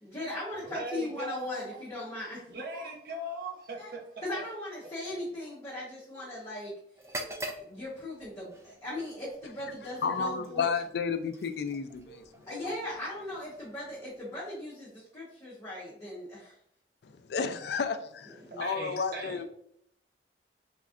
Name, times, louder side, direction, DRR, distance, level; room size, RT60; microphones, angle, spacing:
voice 1, 0.0-2.4 2.7-2.9 3.8-3.9 4.2-6.7 7.2-10.6 12.1-12.2 12.4-16.5 18.4-18.9, left 1 dB, 15° left, 1.0 m, -39 dB
voice 2, 0.5-1.8 2.5-4.0 4.3-4.4 18.6-19.4, right 2 dB, 55° right, 0.7 m, -39 dB
sound 1, 6.9-14.8, right 1 dB, 15° right, 0.3 m, -46 dB
voice 3, 10.0-12.2 12.6-12.7 17.0-19.4, left 5 dB, 60° left, 0.3 m, -32 dB
3.5 x 3.1 x 2.4 m
head